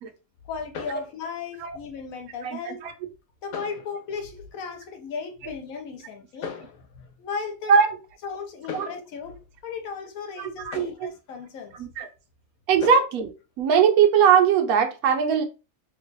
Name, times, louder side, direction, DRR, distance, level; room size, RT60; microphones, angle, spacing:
voice 1, 0.5-2.8 3.4-7.7 8.2-9.4 9.6-11.7 12.8-12.9, left 5 dB, 75° left, 1.1 m, -35 dB
voice 2, 2.4-2.9 7.7-8.0 8.7-8.9 10.4-11.1 11.7-12.1 12.7-13.3 13.6-15.4, right 7 dB, 80° right, 1.1 m, -20 dB
3.1 x 2.2 x 3.8 m
omnidirectional pair, 1.5 m